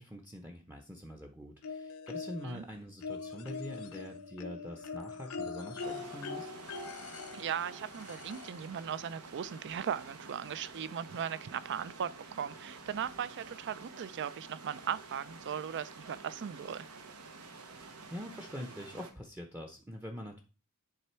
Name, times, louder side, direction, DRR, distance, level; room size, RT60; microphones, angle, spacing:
voice 1, 0.0-6.5 17.6-20.4, left 1 dB, 10° right, 0.7 m, -45 dB
sound 1, 1.6-2.6 3.0-8.7 9.9-10.0 10.4-10.5, left 4 dB, 70° left, 0.7 m, -42 dB
sound 2, 5.8-19.1, right 4 dB, 80° right, 1.1 m, -50 dB
voice 2, 7.3-16.9, right 8 dB, 55° right, 0.4 m, -38 dB
9.9 x 3.4 x 4.4 m
head